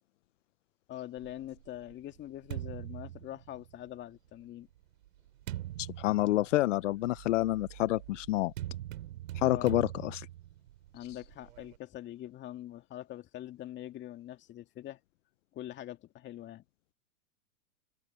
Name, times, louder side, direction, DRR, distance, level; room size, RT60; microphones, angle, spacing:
voice 1, 0.9-4.7 9.5-9.8 10.9-15.0 15.5-16.6, left 13 dB, 25° left, 2.5 m, -44 dB
sound 1, 1.2-4.0 4.7-11.8, right 14 dB, 60° right, 2.9 m, -43 dB
voice 2, 5.8-8.5 9.3-10.3, left 16 dB, 50° left, 0.9 m, -28 dB
hypercardioid pair, 135°, 46 cm